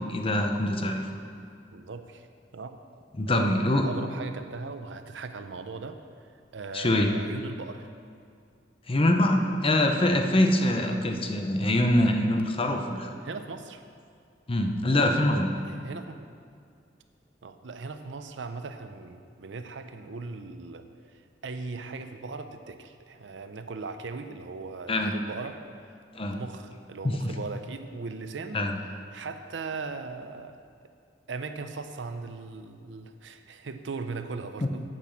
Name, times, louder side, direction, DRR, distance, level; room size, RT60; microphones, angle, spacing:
voice 1, 0.1-1.1 3.2-3.8 6.7-7.1 8.9-13.1 14.5-15.6 24.9-25.1 26.2-26.4 27.0-27.3 28.5-28.8, left 1 dB, 30° left, 4 dB, 0.8 m, -24 dB
voice 2, 1.7-2.3 2.5-2.8 3.3-6.0 6.5-7.9 10.8-11.0 13.2-13.9 15.5-16.2 17.4-25.6 26.3-28.6 29.1-30.6 31.3-34.8, right 4 dB, 85° right, 8 dB, 0.6 m, -38 dB
8.7 x 6.1 x 7.0 m, 2.3 s
head